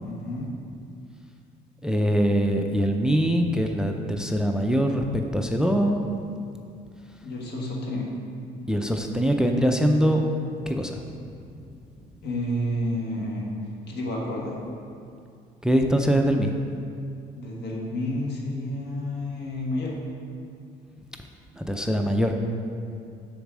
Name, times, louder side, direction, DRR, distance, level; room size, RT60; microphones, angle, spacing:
voice 1, 0.0-0.5 7.2-8.1 12.2-13.5 13.9-14.6 17.4-20.0, left 1 dB, 75° left, -2 dB, 1.6 m, -30 dB
voice 2, 1.8-6.0 8.7-10.2 10.7-11.0 15.6-16.5 21.6-22.4, equal, 5° right, 4 dB, 0.4 m, -23 dB
7.0 x 4.1 x 6.1 m, 2.4 s
cardioid pair, 110°, 17 cm